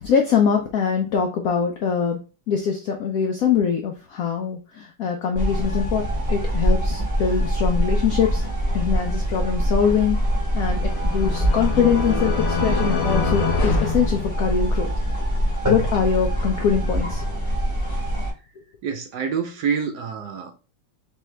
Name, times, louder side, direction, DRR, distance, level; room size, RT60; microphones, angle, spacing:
voice 1, 0.0-2.2 2.5-8.4 8.7-10.2 10.5-14.9 15.7-17.2, left 7 dB, 75° left, 3 dB, 0.8 m, -23 dB
sound 1, 5.3-18.3, equal, 10° right, 0.9 m, -24 dB
sound 2, 10.3-14.9, left 5 dB, 55° left, 1.2 m, -26 dB
voice 2, 18.8-20.5, right 6 dB, 70° right, 6 dB, 1.0 m, -27 dB
3.6 x 3.3 x 3.2 m, 0.33 s
omnidirectional pair, 2.1 m